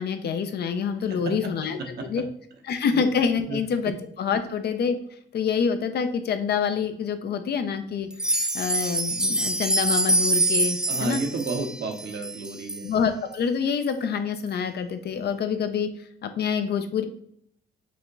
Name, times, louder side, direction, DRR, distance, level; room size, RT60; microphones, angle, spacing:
voice 1, 0.0-1.8 2.1-2.2 2.7-3.9 4.2-5.0 5.3-11.2 12.8-15.9 16.2-17.0, left 6 dB, 55° left, 9 dB, 0.5 m, -26 dB
voice 2, 1.1-2.2 2.9-3.0 3.5-3.6 3.8-4.0 10.9-12.9, right 3 dB, 55° right, 3 dB, 0.9 m, -32 dB
sound 1, 8.1-12.9 13.3-13.4 13.9-14.0 14.5-14.6, right 1 dB, 5° right, 0.4 m, -25 dB
4.9 x 2.2 x 3.9 m, 0.67 s
cardioid pair, 90°, 20 cm